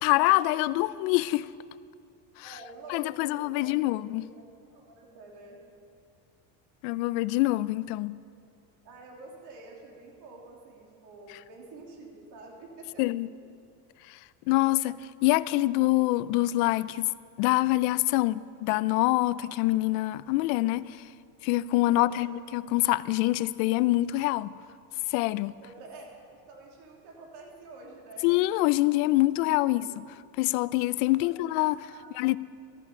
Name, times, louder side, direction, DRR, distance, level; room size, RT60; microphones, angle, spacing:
voice 1, 0.0-1.5 2.4-2.5 2.9-4.3 6.8-8.2 13.0-13.3 14.1-14.2 14.5-17.1 17.4-21.0 21.4-24.6 25.1-25.6 28.2-30.0 30.4-32.4, left 18 dB, 75° left, 0.5 m, -25 dB
voice 2, 2.4-5.6 8.8-13.1 21.9-22.3 25.6-28.3 29.6-29.7 31.2-31.3 31.8-32.1, right 2 dB, 60° right, 3.0 m, -48 dB
14.0 x 13.0 x 4.4 m
cardioid pair, 135°, 44 cm